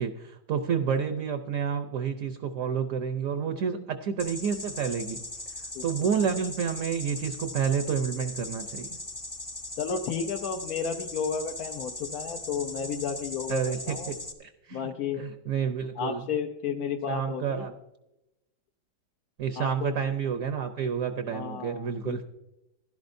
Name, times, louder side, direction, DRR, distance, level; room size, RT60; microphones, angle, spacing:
voice 1, 0.0-5.2 5.8-9.0 13.5-14.1 14.4-14.9 15.1-16.2 17.1-17.7 19.4-22.2, right 7 dB, 60° right, 8 dB, 1.0 m, -29 dB
sound 1, 4.2-14.3, left 2 dB, 25° left, 0.4 m, -39 dB
voice 2, 5.7-6.1 9.8-14.1 14.7-15.2 16.0-17.7 19.6-19.9 21.3-22.2, left 6 dB, 65° left, 4 dB, 1.1 m, -32 dB
16.0 x 11.5 x 2.6 m, 0.93 s
omnidirectional pair, 1.9 m